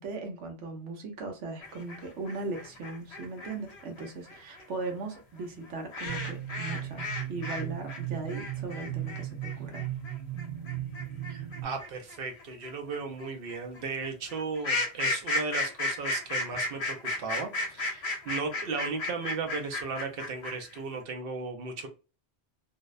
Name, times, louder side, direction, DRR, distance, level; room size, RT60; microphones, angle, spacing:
voice 1, 0.0-9.8, right 3 dB, 80° right, 1.0 m, -38 dB
sound 1, 1.6-7.6 7.9-20.8, left 2 dB, 65° left, 0.9 m, -34 dB
sound 2, 6.1-11.6, right 12 dB, 25° right, 0.9 m, -37 dB
voice 2, 11.3-21.9, right 4 dB, 60° right, 0.7 m, -36 dB
2.6 x 2.0 x 2.3 m
omnidirectional pair, 1.2 m